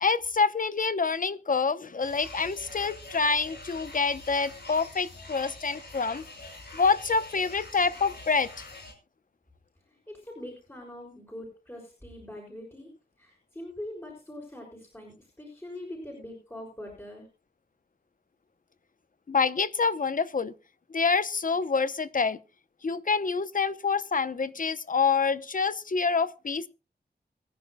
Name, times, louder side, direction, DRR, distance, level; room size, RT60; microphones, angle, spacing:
voice 1, 0.0-6.2 6.7-8.7 19.3-20.5 20.9-22.4 22.8-26.7, left 4 dB, 50° left, 0.8 m, -27 dB
sound 1, 2.0-8.9, left 2 dB, 80° left, 5.9 m, -45 dB
voice 2, 9.9-12.9 13.2-17.3, left 1 dB, 15° left, 6.6 m, -43 dB
25.0 x 10.5 x 2.3 m
wide cardioid pair, 95°, 17 cm